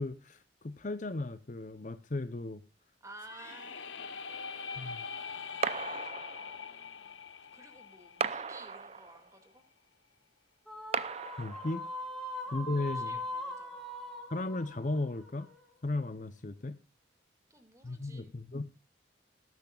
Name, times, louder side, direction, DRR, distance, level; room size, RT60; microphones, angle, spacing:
voice 1, 0.0-2.6 4.8-5.0 11.4-11.9 12.5-13.2 14.3-15.5 15.8-16.8 17.8-18.7, left 2 dB, 40° left, 12 dB, 0.7 m, -35 dB
voice 2, 3.0-5.1 6.0-6.1 6.4-7.2 7.5-9.6 12.5-12.6 12.9-13.9 17.5-18.3, right 2 dB, 15° right, 6 dB, 2.2 m, -54 dB
sound 1, 3.2-9.1, left 6 dB, 85° left, 0.9 m, -43 dB
sound 2, 5.6-6.7 8.2-9.3 10.9-12.0, right 5 dB, 35° right, 0.5 m, -36 dB
sound 3, 10.7-16.1, left 1 dB, ahead, 2.5 m, -41 dB
19.5 x 10.5 x 2.4 m, 0.26 s
head